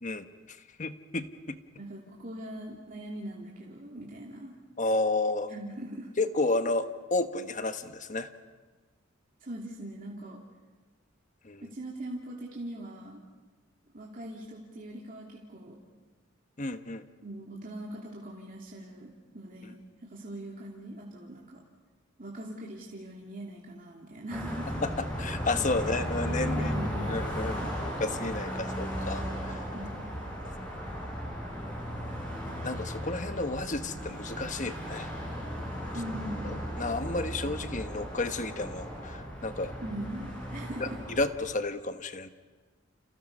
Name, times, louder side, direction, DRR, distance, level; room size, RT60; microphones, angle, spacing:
voice 1, 0.0-1.6 4.8-5.5 6.2-8.3 11.4-11.6 16.6-17.0 24.8-24.9 25.2-26.8 27.1-29.7 30.4-30.6 32.6-35.1 36.8-39.7 40.8-42.3, left 2 dB, 40° left, 9 dB, 1.2 m, -32 dB
voice 2, 1.8-4.5 5.5-6.1 9.4-10.4 11.6-13.2 13.9-15.8 17.2-21.6 22.2-24.7 25.8-25.9 26.3-27.8 29.7-30.1 35.9-36.5 39.8-41.0, right 1 dB, 45° right, -3 dB, 2.8 m, -41 dB
Car passing by, 24.3-41.5, equal, 10° left, 6.3 m, -36 dB
30.0 x 28.5 x 5.5 m, 1.3 s
head